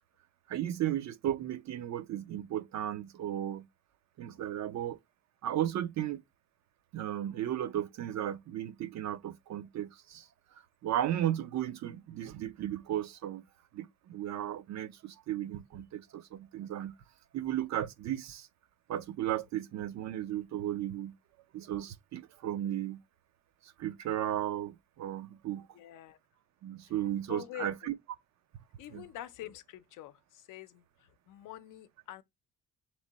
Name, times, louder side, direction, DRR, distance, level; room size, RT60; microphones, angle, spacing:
voice 1, 0.5-3.7 4.2-5.0 5.4-6.2 6.9-10.3 10.8-13.4 13.7-16.9 17.3-18.5 18.9-21.1 21.5-23.0 23.6-25.7 26.6-27.9 28.9-29.0, right 12 dB, 65° right, 0.5 m, -35 dB
voice 2, 25.7-26.2 27.3-27.9 28.8-32.2, left 14 dB, 85° left, 0.5 m, -46 dB
3.6 x 3.1 x 4.0 m
cardioid pair, 105°, 31 cm